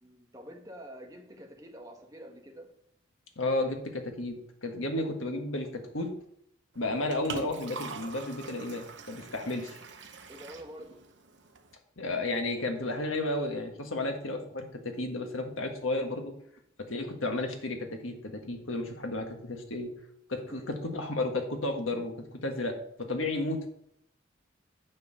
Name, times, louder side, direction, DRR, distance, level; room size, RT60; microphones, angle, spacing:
voice 1, 0.0-2.7 9.4-9.5 10.3-11.0 20.5-20.6, equal, 20° right, 2 dB, 1.4 m, -47 dB
voice 2, 3.4-6.1 6.7-9.7 12.0-16.3 16.8-19.9 20.3-23.7, left 2 dB, 90° left, 4 dB, 1.6 m, -33 dB
Liquid, 6.7-11.7, right 5 dB, 60° right, 0.9 m, -45 dB
9.4 x 4.7 x 6.7 m, 0.71 s
head